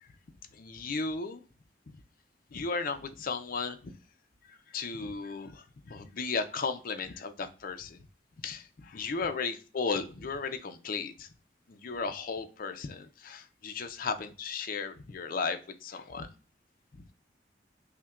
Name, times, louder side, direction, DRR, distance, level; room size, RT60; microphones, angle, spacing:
voice 1, 0.5-1.4 2.5-3.9 4.5-8.1 8.4-11.3 11.7-16.3 16.9-17.0, left 4 dB, 55° left, 8 dB, 0.5 m, -35 dB
5.5 x 2.2 x 2.3 m, 0.36 s
head